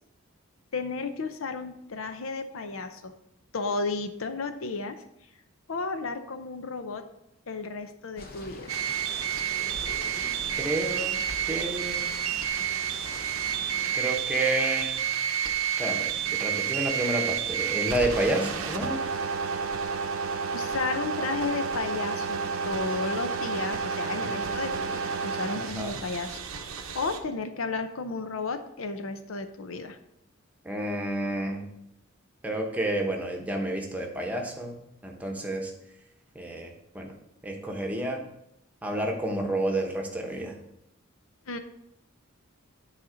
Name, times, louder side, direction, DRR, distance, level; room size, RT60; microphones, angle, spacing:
voice 1, 0.7-3.1 3.5-5.0 5.7-7.1 7.5-8.8 20.5-26.4 26.9-30.0 41.5-41.6, left 4 dB, 75° left, 8 dB, 0.7 m, -33 dB
sound 1, 8.2-14.0, left 2 dB, 45° left, 0.8 m, -44 dB
sound 2, 8.7-27.2, right 7 dB, 80° right, 0.8 m, -30 dB
voice 2, 10.6-11.2 11.5-12.1 13.9-15.1 15.8-19.0 24.2-24.4 25.5-26.0 30.6-31.7 32.4-35.7 36.3-37.1 37.4-38.2 38.8-40.5, right 1 dB, 5° right, 1 dB, 0.9 m, -30 dB
9.3 x 4.2 x 5.0 m, 0.81 s
head